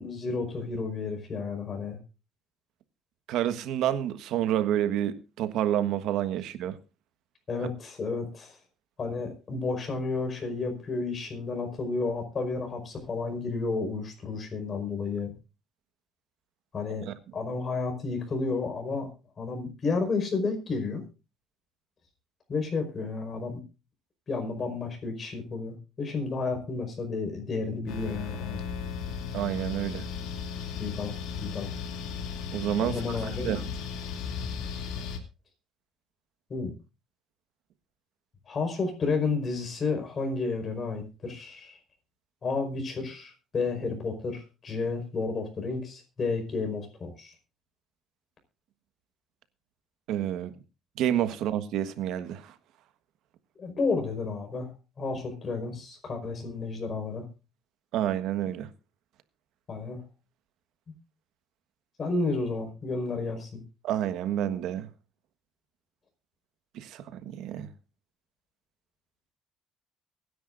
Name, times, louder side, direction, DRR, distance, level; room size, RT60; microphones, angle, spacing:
voice 1, 0.0-2.0 7.5-8.6 9.0-15.3 16.7-17.1 17.3-19.1 19.4-21.0 22.5-23.6 24.3-28.6 30.8-31.1 31.4-31.7 32.8-33.5 36.5-36.7 38.5-41.8 42.4-47.3 53.6-54.7 55.0-57.3 59.7-60.0 62.0-63.6, left 4 dB, 35° left, 5.1 m, -31 dB
voice 2, 3.3-6.8 17.1-17.2 29.3-30.1 32.5-33.6 50.1-50.5 51.0-52.5 57.9-58.7 63.8-64.9 66.7-67.7, right 11 dB, 75° right, 1.4 m, -29 dB
sound 1, 27.9-35.2, left 6 dB, 80° left, 2.6 m, -35 dB
24.0 x 10.5 x 2.6 m
cardioid pair, 140°, 0 cm